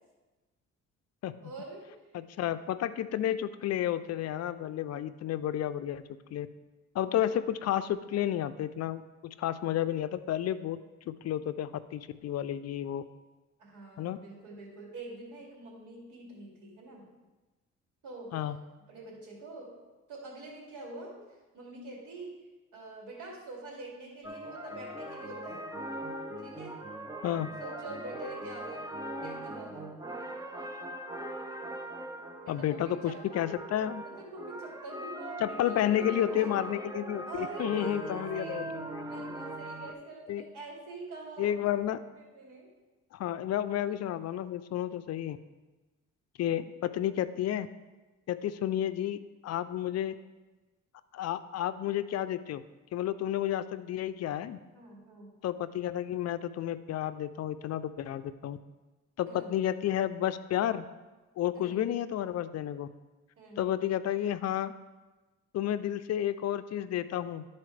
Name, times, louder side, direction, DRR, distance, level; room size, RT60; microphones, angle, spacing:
voice 1, 1.4-1.9 13.6-17.0 18.0-18.3 18.9-19.7 20.1-21.2 21.5-22.4 22.7-25.7 26.4-26.8 27.6-28.9 29.2-29.9 32.4-33.2 34.0-38.7 39.0-41.7 42.1-42.7 54.7-55.3 59.3-59.5 61.5-61.8 63.4-63.6, right 2 dB, 80° right, -3 dB, 2.5 m, -45 dB
voice 2, 2.1-6.0 6.3-6.5 6.9-10.8 11.1-13.0 14.0-14.2 18.3-18.6 27.2-27.5 32.5-34.0 35.4-39.0 40.3-40.4 41.4-42.0 43.1-45.4 46.4-47.7 48.3-49.2 49.4-50.1 51.1-52.6 52.9-54.6 55.4-58.6 59.2-60.8 61.4-62.9 63.6-64.7 65.5-67.5, left 11 dB, 55° left, 13 dB, 0.4 m, -31 dB
sound 1, 24.2-39.9, right 1 dB, 10° right, 0.7 m, -41 dB
12.0 x 4.3 x 3.2 m, 1.2 s
cardioid pair, 90°, 30 cm